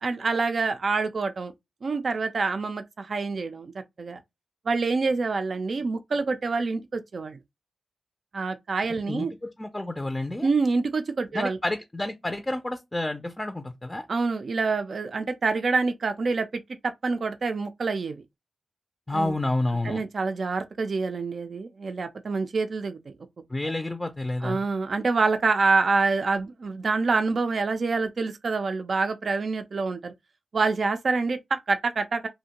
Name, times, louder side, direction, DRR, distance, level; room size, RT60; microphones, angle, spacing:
voice 1, 0.0-1.5 1.8-4.2 4.7-7.4 8.3-9.3 10.4-11.6 14.1-16.5 16.8-18.2 19.1-19.4 19.8-23.0 23.7-23.8 24.4-30.1 30.5-32.3, right 4 dB, 65° right, 0.4 m, -26 dB
voice 2, 9.1-10.5 11.3-14.1 19.1-20.0 23.5-24.6, left 2 dB, 20° left, 0.4 m, -29 dB
2.5 x 2.1 x 2.8 m
cardioid pair, 50°, 0 cm